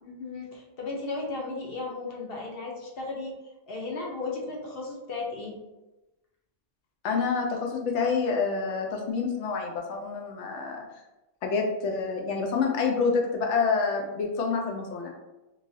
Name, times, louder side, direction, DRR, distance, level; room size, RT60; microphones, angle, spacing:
voice 1, 0.0-3.3 3.7-5.6, left 3 dB, 65° left, 0 dB, 0.8 m, -35 dB
voice 2, 7.0-10.8 11.4-15.1, left 5 dB, 90° left, 1 dB, 1.0 m, -27 dB
3.1 x 2.6 x 2.6 m, 1.0 s
omnidirectional pair, 1.2 m